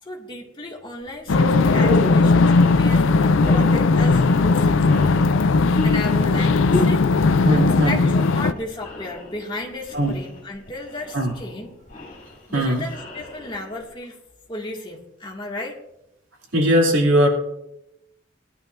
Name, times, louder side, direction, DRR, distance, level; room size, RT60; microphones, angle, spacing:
voice 1, 0.0-5.1 5.8-11.7 12.5-14.2 14.5-15.8, left 1 dB, 25° left, -2 dB, 2.1 m, -34 dB
sound 1, 1.1-1.2 1.6-13.9, left 2 dB, 45° left, 3.1 m, -34 dB
sound 2, 1.3-8.5, left 3 dB, 80° left, 0.5 m, -17 dB
voice 2, 7.4-8.0 9.9-10.1 11.1-11.3 12.5-12.8 16.5-17.3, equal, 80° right, -1 dB, 2.9 m, -19 dB
17.5 x 11.0 x 2.6 m, 0.86 s
head